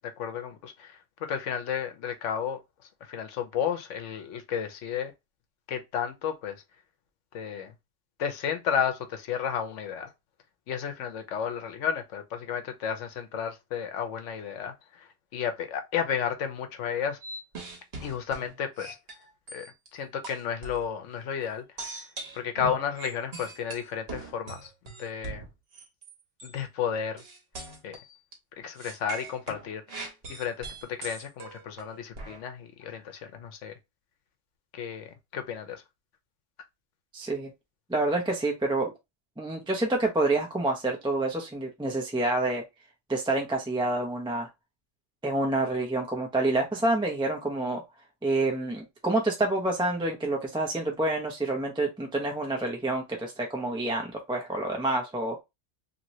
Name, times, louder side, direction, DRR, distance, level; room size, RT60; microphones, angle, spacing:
voice 1, 0.2-2.6 3.1-5.1 5.7-6.5 7.3-7.7 8.2-10.1 10.7-15.1 15.3-17.2 18.0-19.0 19.5-22.0 22.3-24.7 25.0-25.5 26.4-27.2 27.8-28.0 28.6-33.7 34.7-35.8, left 7 dB, 85° left, 1.0 m, -32 dB
sound 1, 17.2-19.9 20.2-20.8 21.8-26.1 26.4-26.6 27.2-28.3 28.8-32.4, right 2 dB, 55° right, 1.3 m, -41 dB
voice 2, 37.1-37.5 37.9-38.9 39.4-42.6 43.1-44.5 45.2-47.8 48.2-55.4, right 2 dB, 5° right, 0.5 m, -28 dB
2.9 x 2.7 x 2.9 m
omnidirectional pair, 1.2 m